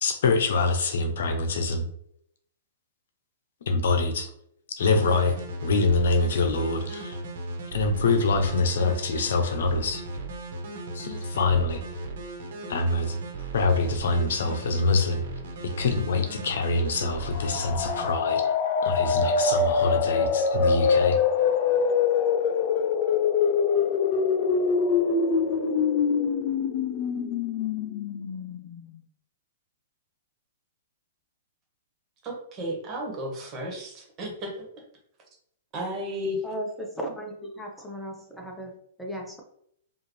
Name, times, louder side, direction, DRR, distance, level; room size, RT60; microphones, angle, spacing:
voice 1, 0.0-1.8 3.7-4.3 4.7-5.4 5.6-7.2 7.7-10.0 10.9-11.8 12.7-13.1 13.5-15.2 15.6-18.4 18.8-21.2, left 3 dB, 75° left, 6 dB, 0.8 m, -25 dB
sound 1, 4.8-18.1, right 1 dB, 65° right, 1.2 m, -37 dB
sound 2, 17.2-28.9, left 5 dB, 45° left, 0.5 m, -24 dB
voice 2, 32.2-34.6 35.7-36.4, equal, 30° right, 0 dB, 1.6 m, -33 dB
voice 3, 36.4-39.4, right 1 dB, 5° left, 0 dB, 0.9 m, -36 dB
4.9 x 2.6 x 3.3 m, 0.70 s
hypercardioid pair, 140°, 0 cm